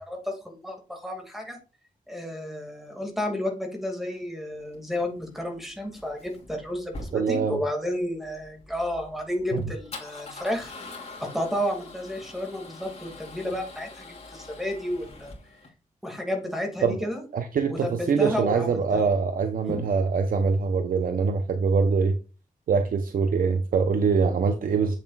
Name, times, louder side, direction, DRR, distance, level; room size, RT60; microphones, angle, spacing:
voice 1, 0.1-1.6 2.1-10.7 11.2-15.3 16.0-17.2 17.7-19.0 19.7-19.8, left 1 dB, ahead, 2.2 m, -31 dB
Male speech man speaking / Car / Engine starting, 4.6-15.7, left 2 dB, 45° left, 2.9 m, -44 dB
voice 2, 7.1-7.6 9.5-9.6 16.8-17.1 17.3-22.2 22.7-25.0, right 5 dB, 80° right, 0.7 m, -24 dB
8.2 x 7.3 x 2.4 m
wide cardioid pair, 165°, 14 cm